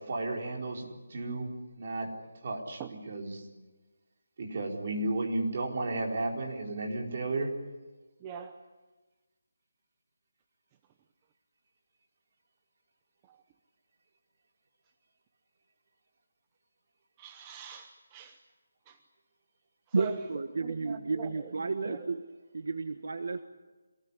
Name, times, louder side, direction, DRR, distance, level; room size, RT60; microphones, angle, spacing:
voice 1, 0.0-1.5 1.8-2.1 2.4-3.4 4.4-7.5, right 2 dB, 35° right, 0 dB, 4.5 m, -33 dB
voice 2, 8.2-8.6 17.2-18.4 18.9-19.0 20.0-20.2 20.6-21.5 21.8-22.0, right 8 dB, 15° right, 6 dB, 0.8 m, -43 dB
voice 3, 19.9-22.2 22.5-23.4, right 4 dB, 60° right, 9 dB, 1.5 m, -32 dB
26.5 x 20.0 x 10.0 m, 1.2 s
hypercardioid pair, 175°, 0 cm